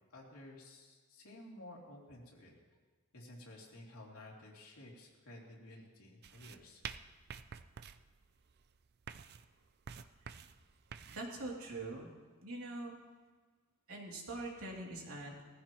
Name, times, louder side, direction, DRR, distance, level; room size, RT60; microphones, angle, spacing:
voice 1, 0.1-2.5 3.1-6.8, left 1 dB, 80° left, -3 dB, 3.1 m, -53 dB
sound 1, 6.2-11.3, right 7 dB, 50° right, 0.5 m, -50 dB
voice 2, 11.1-12.1 12.4-13.0 13.9-15.4, right 2 dB, 85° right, -2 dB, 2.9 m, -43 dB
19.5 x 14.5 x 3.1 m, 1.4 s
head